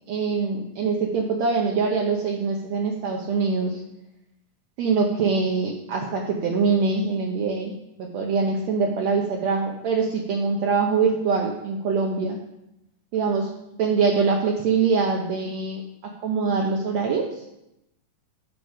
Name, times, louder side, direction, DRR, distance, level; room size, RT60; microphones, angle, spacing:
voice 1, 0.1-3.8 4.8-7.7 8.0-12.4 13.1-13.5 13.8-17.3, right 5 dB, 80° right, 0 dB, 1.5 m, -24 dB
9.2 x 5.3 x 5.0 m, 0.85 s
omnidirectional pair, 4.1 m